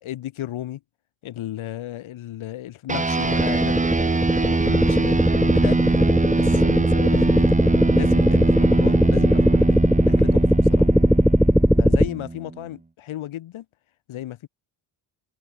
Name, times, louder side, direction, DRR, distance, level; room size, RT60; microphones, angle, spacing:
voice 1, 0.0-0.8 1.2-3.8 4.4-7.5 7.9-10.4 10.7-10.9 11.8-13.7 14.1-14.5, left 13 dB, 80° left, 5.4 m, -34 dB
sound 1, 2.9-12.6, right 3 dB, 15° right, 2.0 m, -23 dB
sound 2, 3.2-12.1, equal, ahead, 0.4 m, -19 dB
open air
cardioid pair, 105°, 48 cm